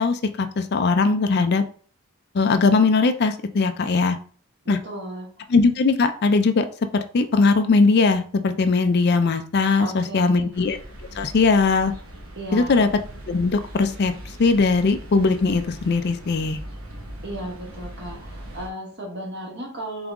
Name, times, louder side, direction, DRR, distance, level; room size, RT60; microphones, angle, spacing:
voice 1, 0.0-1.6 2.3-4.2 4.7-4.8 5.5-6.7 6.9-10.8 11.2-11.9 12.5-12.9 13.3-14.1 14.4-16.6, left 4 dB, 45° left, 9 dB, 0.4 m, -20 dB
voice 2, 4.6-5.3 9.8-10.5 12.4-12.8 17.2-20.1, right 1 dB, 50° right, -3 dB, 1.8 m, -34 dB
sound 1, 10.5-18.7, right 1 dB, 70° right, 1.2 m, -40 dB
3.9 x 3.6 x 3.6 m, 0.44 s
head